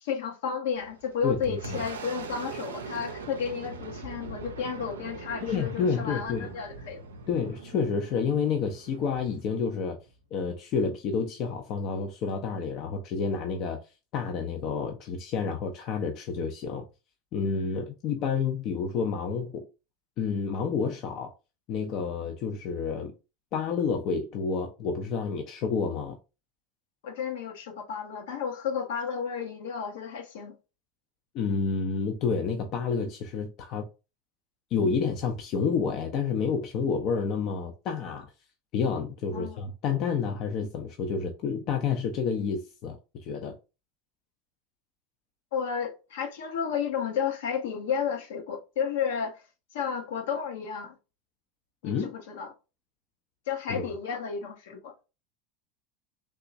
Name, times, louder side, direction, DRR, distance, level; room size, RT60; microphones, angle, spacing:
voice 1, 0.0-7.0 27.0-30.6 39.3-39.7 45.5-49.4 49.7-50.9 51.8-52.5 53.5-55.0, left 7 dB, 75° left, 0.9 m, -32 dB
Boom, 0.8-10.2, right 4 dB, 85° right, 0.5 m, -42 dB
voice 2, 1.2-1.8 5.4-6.5 7.3-10.0 10.3-13.8 14.1-16.9 17.3-19.6 20.2-21.3 21.7-23.1 23.5-26.2 31.3-33.9 34.7-38.3 38.7-43.5 51.8-52.1 53.7-53.9, left 5 dB, 55° left, 0.5 m, -29 dB
3.5 x 2.9 x 2.5 m
hypercardioid pair, 85°, 0 cm